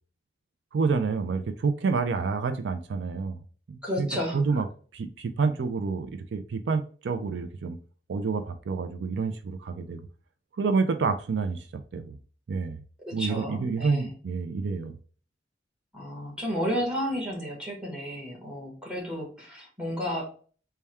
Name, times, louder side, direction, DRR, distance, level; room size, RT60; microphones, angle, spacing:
voice 1, 0.7-3.4 3.7-4.1 4.3-4.7 4.9-7.8 8.1-10.0 10.6-11.7 11.9-12.2 12.5-12.8 13.1-14.9, right 4 dB, 75° right, 0.4 m, -28 dB
voice 2, 3.8-4.6 13.0-14.1 15.9-20.3, equal, 5° right, 1.3 m, -32 dB
3.4 x 2.2 x 4.2 m
head